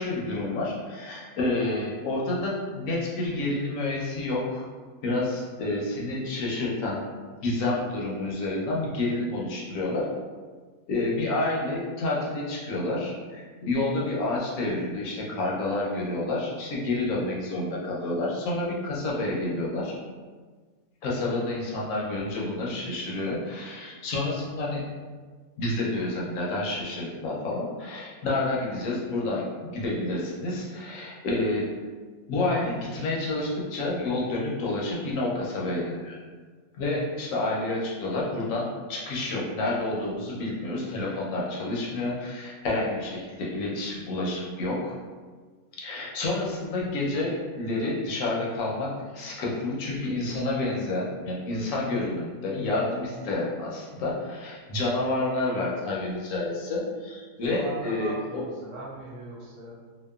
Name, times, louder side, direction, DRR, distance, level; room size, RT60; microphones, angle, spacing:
voice 1, 0.0-4.7 5.0-7.1 7.4-10.1 10.9-19.9 21.0-24.9 25.6-31.7 32.3-36.2 36.8-45.0 45.7-58.4, left 2 dB, 70° left, -4 dB, 0.9 m, -29 dB
voice 2, 57.4-59.8, right 2 dB, 90° right, -6 dB, 1.3 m, -39 dB
2.8 x 2.1 x 2.2 m, 1.5 s
omnidirectional pair, 1.5 m